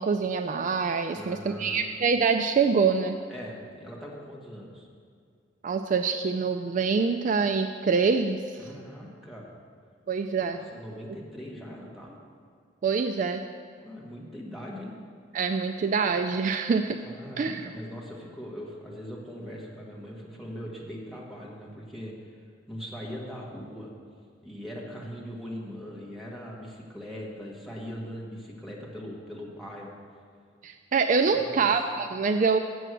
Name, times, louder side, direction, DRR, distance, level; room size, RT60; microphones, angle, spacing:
voice 1, 0.0-3.2 5.6-8.6 10.1-10.6 12.8-13.4 15.3-17.0 17.4-17.7 30.6-32.6, right 5 dB, 45° right, 7 dB, 0.3 m, -25 dB
voice 2, 1.1-1.9 3.3-4.9 8.6-9.5 10.4-12.1 13.7-14.9 17.0-22.3 22.7-23.9 24.4-29.9 31.3-31.7, equal, ahead, -3 dB, 1.5 m, -41 dB
7.6 x 6.3 x 7.8 m, 2.2 s
head